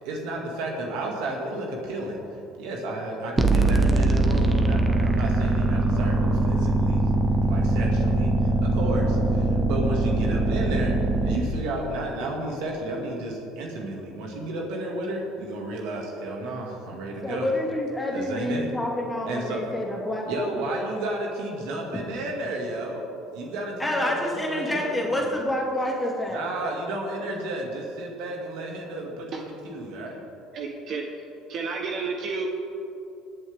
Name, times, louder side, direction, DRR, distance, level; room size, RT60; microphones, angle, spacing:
voice 1, 0.0-7.1 7.5-17.5 18.1-18.7 19.2-19.6 20.3-25.3 26.3-30.2, right 2 dB, 75° right, 0 dB, 2.4 m, -32 dB
sound 1, 3.4-11.4, right 2 dB, 20° right, 1.1 m, -22 dB
voice 2, 17.2-20.3 23.8-26.4, left 1 dB, 10° left, -2 dB, 2.9 m, -28 dB
voice 3, 30.5-31.0 31.5-32.5, right 4 dB, 55° right, 1 dB, 1.2 m, -31 dB
22.0 x 7.8 x 3.7 m, 2.9 s
supercardioid pair, 90°, 0 cm